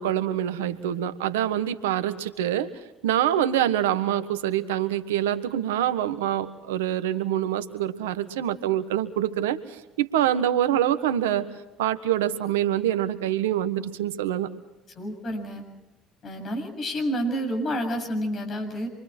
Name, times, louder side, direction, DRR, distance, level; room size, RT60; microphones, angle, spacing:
voice 1, 0.0-2.7 3.0-11.5 11.8-14.5, right 11 dB, 85° right, 12 dB, 1.4 m, -25 dB
voice 2, 14.9-15.6 16.2-18.9, equal, 45° left, 5 dB, 7.5 m, -29 dB
27.5 x 24.0 x 4.5 m, 0.97 s
hypercardioid pair, 65°, 0 cm